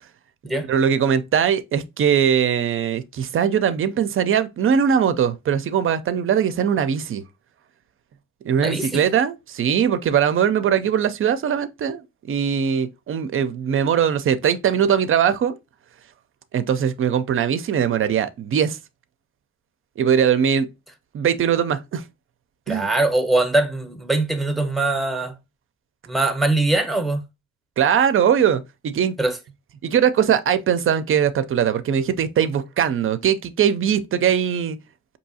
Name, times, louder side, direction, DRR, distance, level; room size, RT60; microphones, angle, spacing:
voice 1, 0.7-7.2 8.4-12.0 12.3-15.6 16.5-18.8 20.0-20.7 21.1-22.0 22.7-22.9 27.8-29.1 29.8-34.8, right 8 dB, 45° right, 0.5 m, -20 dB
voice 2, 8.6-9.0 22.7-25.3 26.1-27.2 29.2-29.4, right 2 dB, ahead, 0.7 m, -22 dB
4.6 x 2.8 x 2.7 m
cardioid pair, 90°, 30 cm